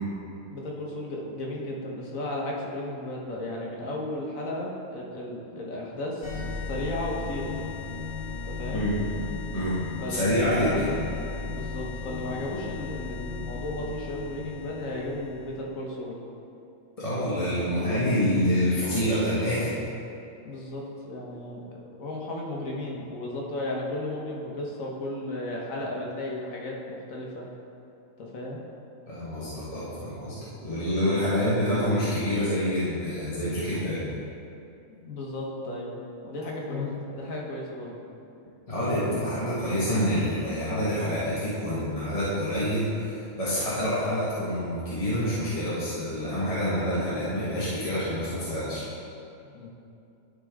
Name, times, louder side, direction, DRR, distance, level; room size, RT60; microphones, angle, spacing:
voice 1, 0.5-7.5 8.4-8.9 10.0-11.0 11.5-16.2 20.4-27.5 28.2-28.6 33.6-33.9 34.9-36.0 36.2-38.0 49.4-49.7, left 1 dB, 70° left, -2 dB, 1.6 m, -34 dB
sound 1, 6.2-15.6, left 4 dB, 50° left, 1.8 m, -36 dB
voice 2, 10.1-10.9 17.0-19.8 29.1-30.4 30.6-34.0 38.7-48.8, equal, 25° left, -11 dB, 1.6 m, -27 dB
12.0 x 5.2 x 3.6 m, 2.7 s
omnidirectional pair, 1.4 m